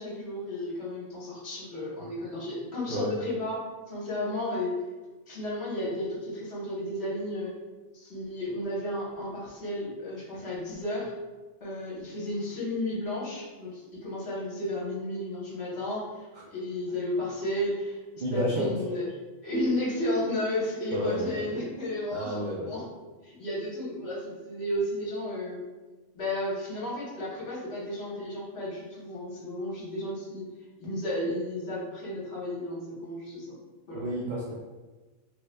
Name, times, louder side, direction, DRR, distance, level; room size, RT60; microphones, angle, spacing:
voice 1, 0.0-4.8 5.3-7.5 8.0-11.1 11.6-18.0 18.3-19.1 19.4-22.8 23.2-25.6 26.1-30.5 30.8-33.5 33.9-34.0, left 1 dB, 55° left, -6 dB, 1.1 m, -33 dB
voice 2, 18.2-18.7 20.9-21.3 22.1-22.7 33.9-34.5, equal, 65° right, -5 dB, 0.4 m, -30 dB
3.0 x 2.2 x 3.2 m, 1.2 s
omnidirectional pair, 1.4 m